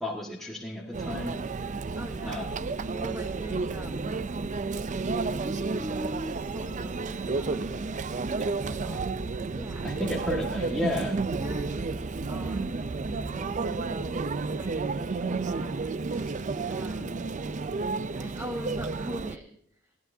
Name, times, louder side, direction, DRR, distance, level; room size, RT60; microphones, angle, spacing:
voice 1, 0.0-1.4 2.2-2.5 8.4-9.0 9.8-11.2, left 1 dB, ahead, -4 dB, 1.7 m, -33 dB
Conversation / Chatter / Crowd, 0.9-19.4, right 3 dB, 40° right, 0.5 m, -31 dB
voice 2, 2.0-2.5 2.9-4.2 5.0-7.6 9.4-9.9 10.8-11.0 11.4-12.8 13.2-15.8 16.1-16.4 16.7-17.3 18.2-19.6, equal, 15° right, 3 dB, 1.2 m, -41 dB
20.0 x 16.0 x 2.7 m, 0.67 s
head